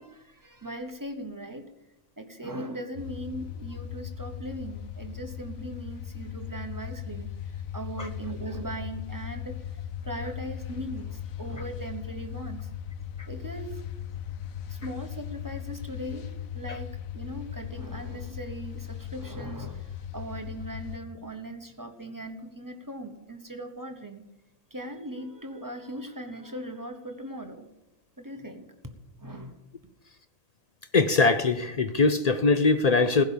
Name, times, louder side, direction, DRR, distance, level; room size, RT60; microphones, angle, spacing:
voice 1, 0.0-1.7 2.2-12.7 13.3-13.8 14.7-24.2 24.7-27.7 28.2-28.7 29.2-29.6, right 1 dB, 15° right, 5 dB, 0.9 m, -39 dB
sound 1, 3.0-21.0, left 9 dB, 85° left, 1.1 m, -38 dB
voice 2, 30.9-33.2, left 3 dB, 55° left, 10 dB, 0.4 m, -22 dB
15.5 x 5.2 x 8.4 m, 0.96 s
omnidirectional pair, 1.4 m